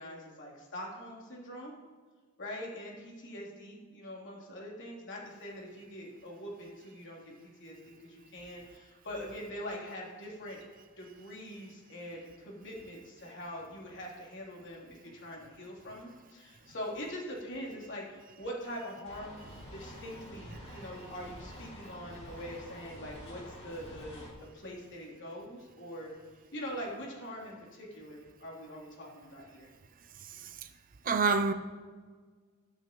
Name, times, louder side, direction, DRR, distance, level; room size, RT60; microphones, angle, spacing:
voice 1, 0.0-1.7 2.4-7.3 7.6-10.6 11.0-19.4 19.7-24.2 24.5-26.1 26.5-29.7, equal, 55° left, 3.4 m, -43 dB
sound 1, 19.1-24.3, equal, 30° left, 3.4 m, -48 dB
voice 2, 31.0-31.5, right 4 dB, 40° right, 0.6 m, -27 dB
22.5 x 8.3 x 3.1 m
head